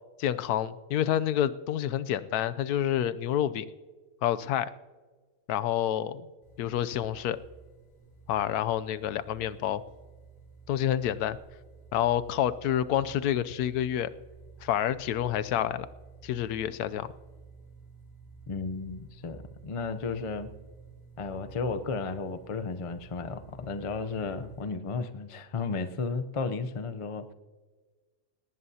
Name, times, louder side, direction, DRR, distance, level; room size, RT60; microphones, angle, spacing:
voice 1, 0.2-3.7 4.2-4.7 5.5-6.3 6.6-7.4 8.3-9.8 10.7-11.4 11.9-14.1 14.6-15.9 16.2-17.1, left 11 dB, 80° left, 14 dB, 1.1 m, -28 dB
sound 1, 6.4-24.6, right 4 dB, 20° left, 3.4 m, -52 dB
voice 2, 18.5-20.5 21.2-27.3, left 4 dB, 45° left, 10 dB, 0.4 m, -34 dB
18.5 x 18.0 x 2.8 m, 1.4 s
omnidirectional pair, 1.6 m